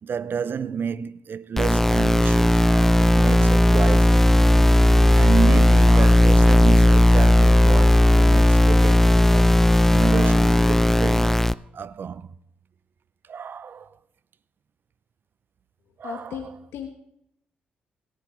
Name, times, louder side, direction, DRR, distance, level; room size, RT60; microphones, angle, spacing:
voice 1, 0.0-4.3 5.1-9.6 9.9-12.3 13.3-14.0 16.0-16.5, right 6 dB, 50° right, 0.6 m, -30 dB
sound 1, 1.6-11.5, left 1 dB, 10° left, 0.5 m, -16 dB
voice 2, 16.0-16.9, left 8 dB, 70° left, 1.2 m, -35 dB
18.0 x 11.0 x 3.3 m
hypercardioid pair, 45°, 4 cm